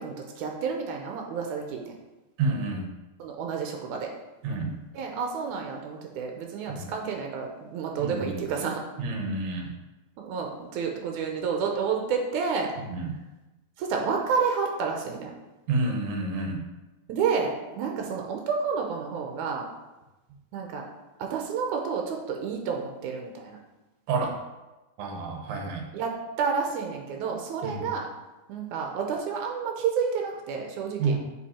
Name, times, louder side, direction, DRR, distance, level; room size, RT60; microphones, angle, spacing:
voice 1, 0.0-2.0 3.2-4.1 4.9-8.8 10.2-12.7 13.8-15.3 17.1-19.7 20.5-20.9 21.2-23.6 25.9-26.1 26.4-28.1 28.5-31.2, right 6 dB, 90° right, 2 dB, 2.2 m, -30 dB
voice 2, 2.4-2.8 4.4-4.7 6.7-6.8 8.0-8.4 9.0-9.7 12.9-13.1 15.7-16.6 24.1-24.4 25.0-25.8 27.6-27.9 31.0-31.2, right 3 dB, 70° right, 2 dB, 2.2 m, -29 dB
7.5 x 4.9 x 4.3 m, 1.1 s
omnidirectional pair, 3.4 m